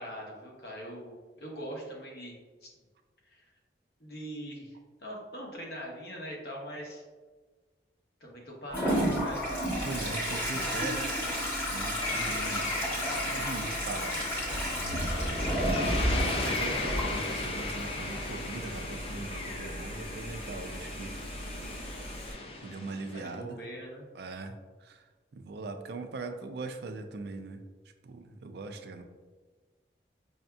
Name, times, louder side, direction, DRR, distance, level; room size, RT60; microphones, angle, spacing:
voice 1, 0.0-2.7 3.2-3.5 4.0-4.7 5.0-7.0 8.2-9.5 23.1-24.1, equal, 60° left, -1 dB, 0.9 m, -42 dB
Toilet flush, 8.7-22.3, equal, 10° left, 1.0 m, -33 dB
voice 2, 9.8-11.0 11.7-12.7 13.2-14.2 15.4-21.1 22.6-23.6 24.1-25.0 25.3-27.6 28.0-29.0, right 3 dB, 65° right, 7 dB, 0.4 m, -40 dB
sound 1, 12.0-23.3, left 2 dB, 30° left, 0.4 m, -37 dB
5.7 x 2.6 x 2.3 m, 1.4 s
head